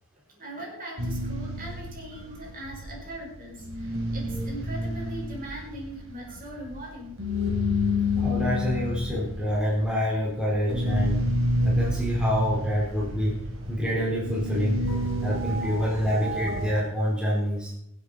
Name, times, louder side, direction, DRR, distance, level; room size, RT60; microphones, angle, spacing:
voice 1, 0.4-7.2 8.0-8.1, right 1 dB, 40° right, -2 dB, 5.1 m, -40 dB
sound 1, 1.0-3.3 3.6-16.7, left 1 dB, 65° right, 3.8 m, -29 dB
voice 2, 8.1-11.3 11.6-13.4 13.7-14.8 15.2-17.7, equal, 5° right, -6 dB, 4.3 m, -27 dB
24.0 x 8.2 x 4.2 m, 0.74 s
head